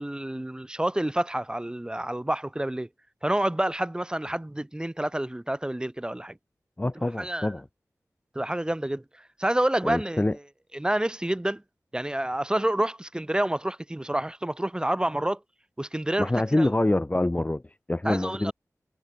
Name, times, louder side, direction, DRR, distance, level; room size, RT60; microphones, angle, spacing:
voice 1, 0.0-2.9 3.2-6.3 7.0-7.5 8.4-9.0 9.4-10.2 10.7-11.6 11.9-15.4 15.8-16.7 18.0-18.5, right 1 dB, 15° right, 0.5 m, -28 dB
voice 2, 6.8-7.6 9.8-10.4 16.2-18.5, left 1 dB, 25° left, 1.1 m, -26 dB
wide cardioid pair, 65°, 6 cm